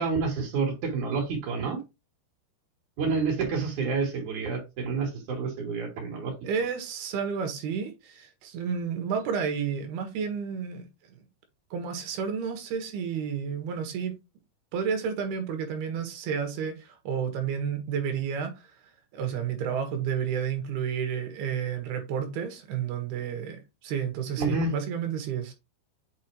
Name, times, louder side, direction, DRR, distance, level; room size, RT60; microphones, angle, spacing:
voice 1, 0.0-1.8 3.0-6.3 24.4-24.7, right 4 dB, 50° right, 3.6 m, -28 dB
voice 2, 6.4-11.2 11.7-14.1 14.7-18.7 19.1-25.5, right 7 dB, 70° right, 3.2 m, -31 dB
8.4 x 4.9 x 3.1 m
omnidirectional pair, 4.9 m